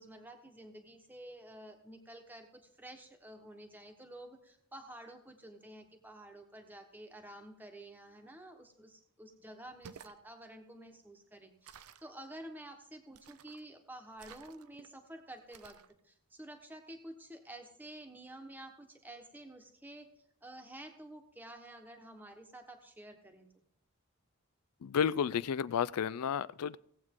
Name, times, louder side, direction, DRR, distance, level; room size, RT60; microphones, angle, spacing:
voice 1, 0.0-15.8 16.0-20.1 20.4-23.6, right 1 dB, 10° right, 4 dB, 1.1 m, -50 dB
sound 1, 9.7-10.2 11.6-12.1 13.1-13.7 14.2-14.9 15.5-15.9, right 7 dB, 80° right, 0.5 m, -54 dB
voice 2, 24.8-26.8, left 7 dB, 90° left, 20 dB, 0.4 m, -32 dB
17.0 x 7.9 x 3.7 m, 0.71 s
head